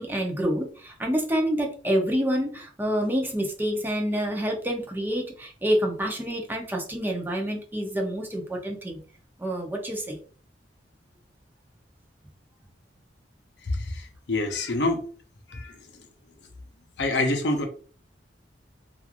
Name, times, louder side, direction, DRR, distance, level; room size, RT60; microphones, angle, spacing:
voice 1, 0.0-9.0 9.4-10.2, equal, 10° right, 0 dB, 0.6 m, -27 dB
voice 2, 13.7-15.0 15.5-15.8 17.0-17.7, left 2 dB, 70° left, 4 dB, 0.7 m, -26 dB
3.0 x 2.4 x 2.4 m, 0.41 s
head